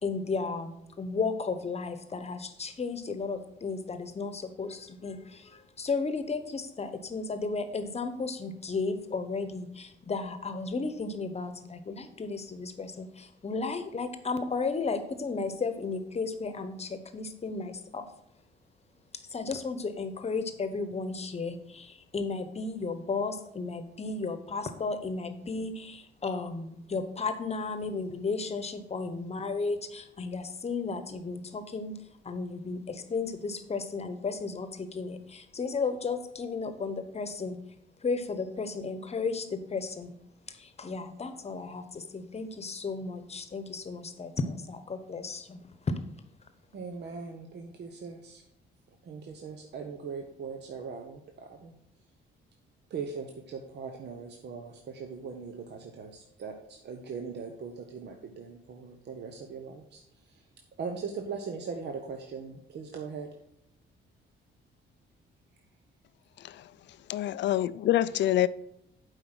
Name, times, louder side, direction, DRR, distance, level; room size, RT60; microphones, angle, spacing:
voice 1, 0.0-18.1 19.3-32.0 32.2-37.6 38.0-40.1 40.5-45.6, left 4 dB, 30° left, 10 dB, 1.0 m, -34 dB
voice 2, 46.7-48.4 49.0-51.7 52.9-60.4 60.8-63.3, right 5 dB, 60° right, 4 dB, 0.9 m, -40 dB
voice 3, 66.4-66.7 67.1-68.5, left 13 dB, 65° left, 17 dB, 0.4 m, -26 dB
7.8 x 4.9 x 6.1 m, 0.80 s
cardioid pair, 90°, 20 cm